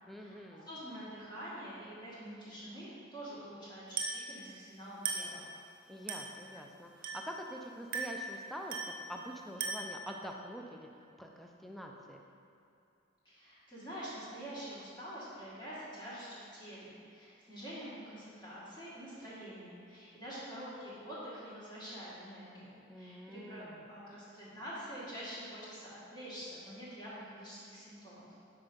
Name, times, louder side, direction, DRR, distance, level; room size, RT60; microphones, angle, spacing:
voice 1, 0.1-0.7 5.9-8.8 9.1-12.2 22.9-23.8, equal, ahead, 1 dB, 0.4 m, -46 dB
voice 2, 0.7-5.4 13.2-28.3, equal, 20° left, -9 dB, 1.6 m, -46 dB
Glass, 4.0-4.3 5.1-5.4 6.1-6.4 7.0-7.4 7.9-8.3 8.7-9.0 9.6-10.0, right 4 dB, 45° right, 0.8 m, -37 dB
5.4 x 4.5 x 5.2 m, 2.5 s
head